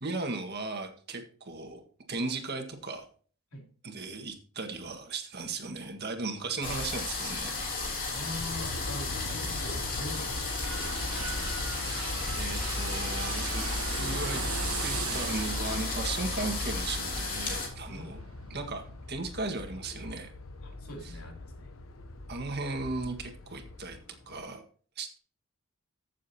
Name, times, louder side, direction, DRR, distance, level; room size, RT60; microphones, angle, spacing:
voice 1, 0.0-1.8 2.1-3.1 3.8-7.5 12.3-14.4 14.8-18.2 18.5-20.3 22.3-24.0 24.3-24.6 25.0-25.2, right 3 dB, 50° right, 4 dB, 1.8 m, -36 dB
sound 1, 6.6-17.7, left 3 dB, 40° left, 3.2 m, -33 dB
voice 2, 8.1-11.2 17.8-18.2 20.6-21.7, left 1 dB, 85° left, 1 dB, 3.2 m, -43 dB
Aircraft, 8.3-24.4, left 2 dB, 65° left, 1.0 m, -42 dB
sound 2, 9.3-19.0 19.4-19.5, right 6 dB, 85° right, 1.3 m, -40 dB
15.0 x 7.3 x 2.9 m, 0.42 s
head